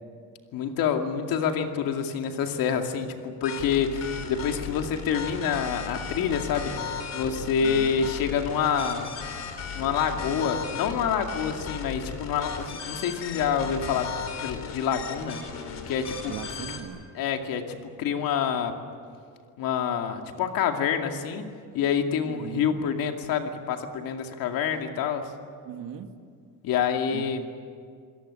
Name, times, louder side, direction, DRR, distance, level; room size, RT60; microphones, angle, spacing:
voice 1, 0.5-6.7 7.1-9.1 9.7-15.4 15.9-16.3 17.2-18.8 19.6-21.5 21.7-25.2 26.6-27.4, left 7 dB, 80° left, 4 dB, 2.4 m, -27 dB
sound 1, 3.4-16.8, left 6 dB, 50° left, 3.4 m, -36 dB
voice 2, 7.6-8.1 16.3-17.0 22.2-22.8 25.6-26.1 27.1-27.5, right 9 dB, 80° right, 7 dB, 2.0 m, -39 dB
26.0 x 18.0 x 9.9 m, 2.2 s
cardioid pair, 155°, 34 cm